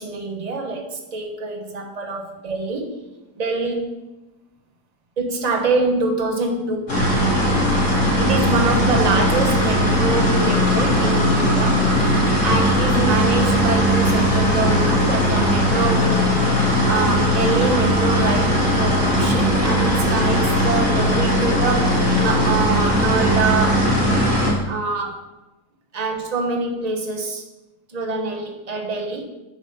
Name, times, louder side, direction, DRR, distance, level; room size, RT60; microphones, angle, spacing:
voice 1, 0.0-2.9 3.3-4.0 5.2-6.9 8.2-11.8 12.4-16.4 16.9-23.9 24.6-25.2 25.9-27.4 27.9-29.2, right 3 dB, 25° right, 1 dB, 1.1 m, -25 dB
sound 1, 6.9-24.5, equal, 45° left, 3.0 m, -18 dB
8.7 x 5.2 x 5.3 m, 1.0 s
omnidirectional pair, 1.8 m